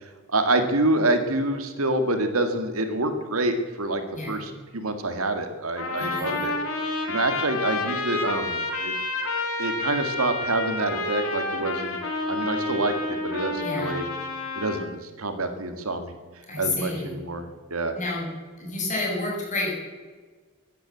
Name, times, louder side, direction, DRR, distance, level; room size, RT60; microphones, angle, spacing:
voice 1, 0.3-6.5 7.1-8.9 9.6-12.0 12.3-14.1 14.6-16.1 16.6-17.9, right 2 dB, 80° right, 7 dB, 2.0 m, -27 dB
Trumpet, 5.8-14.8, left 2 dB, 85° left, 2.9 m, -29 dB
voice 2, 6.0-6.4 13.6-13.9 16.5-17.1 17.9-18.3 18.6-19.7, left 2 dB, 35° left, -3 dB, 6.4 m, -30 dB
16.0 x 10.5 x 8.1 m, 1.4 s
head